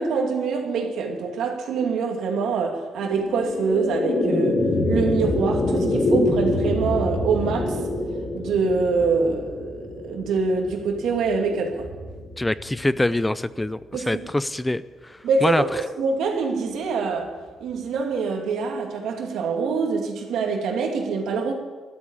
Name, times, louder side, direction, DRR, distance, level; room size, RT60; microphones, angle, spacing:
voice 1, 0.0-7.8 8.3-11.9 13.9-14.3 15.2-17.3 17.6-21.5, right 4 dB, 75° right, 2 dB, 2.4 m, -25 dB
sound 1, 3.0-13.5, left 2 dB, 35° left, 2.4 m, -26 dB
voice 2, 12.4-15.6, left 1 dB, 10° left, 16 dB, 0.4 m, -24 dB
13.0 x 8.4 x 8.8 m, 1.3 s
cardioid pair, 90°, 0 cm